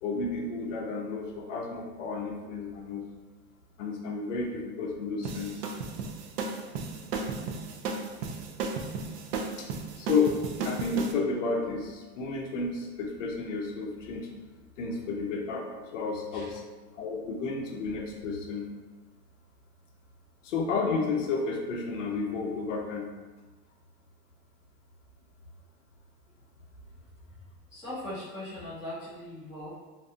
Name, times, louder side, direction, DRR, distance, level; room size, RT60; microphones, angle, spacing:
voice 1, 0.0-3.0 3.8-5.6 9.6-9.7 10.0-10.3 10.6-14.3 14.8-16.6 16.9-18.7 20.4-23.1, left 4 dB, 55° left, 1 dB, 0.5 m, -31 dB
sound 1, 5.2-11.1, right 4 dB, 80° right, 0.5 m, -34 dB
voice 2, 27.7-29.7, left 1 dB, ahead, -18 dB, 0.4 m, -39 dB
2.6 x 2.5 x 2.4 m, 1.3 s
supercardioid pair, 165°, 48 cm